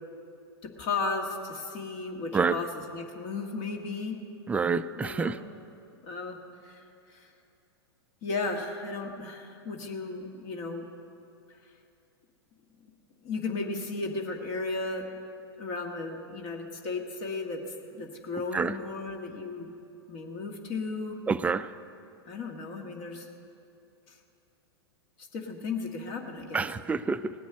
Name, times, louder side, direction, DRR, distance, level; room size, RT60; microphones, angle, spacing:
voice 1, 0.6-4.2 5.0-5.4 6.0-6.4 6.6-7.3 8.2-10.8 13.2-15.1 15.6-17.6 17.9-19.7 20.1-21.2 22.3-23.3 25.3-26.7, left 3 dB, 45° left, 3 dB, 1.6 m, -35 dB
voice 2, 4.5-5.4 18.5-18.7 21.3-21.7 26.5-27.3, right 5 dB, 10° right, 13 dB, 0.3 m, -27 dB
18.5 x 6.1 x 8.6 m, 2.7 s
hypercardioid pair, 115°, 14 cm